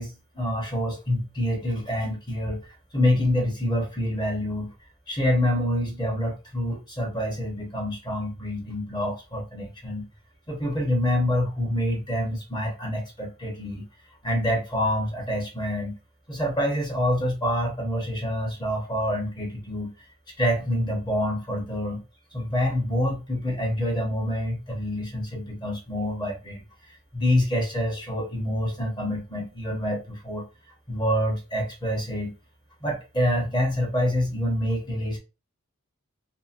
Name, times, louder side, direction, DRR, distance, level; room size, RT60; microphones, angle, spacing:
voice 1, 0.0-2.6 2.9-4.7 5.1-10.1 10.5-13.9 14.2-16.0 16.3-19.9 20.4-22.0 22.3-26.6 27.1-30.5 30.9-32.3 32.8-35.2, left 1 dB, 20° left, 0.8 m, -26 dB
2.8 x 2.5 x 2.5 m
head